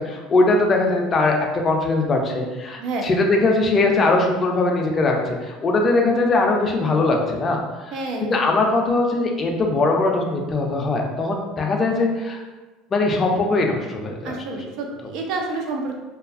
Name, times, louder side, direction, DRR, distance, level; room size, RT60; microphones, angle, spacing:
voice 1, 0.0-1.4 1.6-7.6 8.2-12.4 12.9-14.4, left 2 dB, 25° left, 1 dB, 0.4 m, -20 dB
voice 2, 2.8-3.1 7.9-8.4 14.2-16.0, right 3 dB, 60° right, 2 dB, 0.4 m, -29 dB
2.6 x 2.3 x 2.4 m, 1.2 s
cardioid pair, 135°, 0 cm